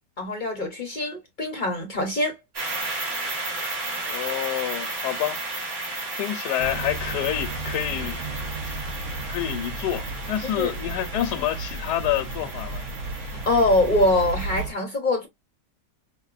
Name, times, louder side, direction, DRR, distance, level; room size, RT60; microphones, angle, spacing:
voice 1, 0.2-2.4 10.6-10.7 13.2-15.3, left 1 dB, 45° left, 0.6 m, -24 dB
sound 1, 2.5-14.7, right 2 dB, 40° right, 1.7 m, -34 dB
voice 2, 4.0-5.4 6.1-8.8 9.3-12.8, left 12 dB, 80° left, 1.2 m, -28 dB
sound 2, 6.6-14.7, right 2 dB, 65° right, 0.7 m, -34 dB
5.3 x 2.1 x 2.4 m
omnidirectional pair, 1.8 m